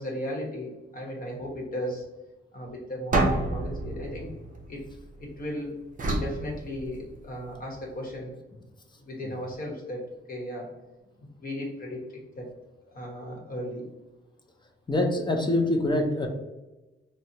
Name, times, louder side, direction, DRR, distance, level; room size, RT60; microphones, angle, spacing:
voice 1, 0.0-2.0 2.5-4.3 4.7-4.8 5.2-5.7 6.1-8.3 9.0-10.7 11.2-12.5 12.9-13.9, equal, 45° left, -1 dB, 1.0 m, -36 dB
sound 1, 3.1-5.3 6.0-7.4, right 2 dB, 40° right, 0.6 m, -29 dB
voice 2, 14.9-16.3, left 1 dB, 20° left, 2 dB, 0.5 m, -24 dB
4.2 x 2.1 x 2.7 m, 1.1 s
wide cardioid pair, 155°, 21 cm